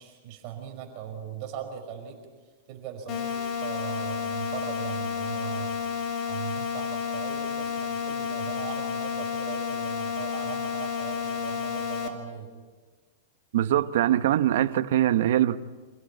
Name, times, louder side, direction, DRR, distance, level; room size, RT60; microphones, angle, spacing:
voice 1, 0.0-2.2 2.7-5.8 6.3-12.5, right 8 dB, 40° right, 5.1 m, -39 dB
sound 1, 3.1-12.1, left 6 dB, 35° left, 3.0 m, -31 dB
voice 2, 13.5-15.6, right 12 dB, 70° right, 0.9 m, -22 dB
27.0 x 16.0 x 8.6 m
supercardioid pair, 150°, 0 cm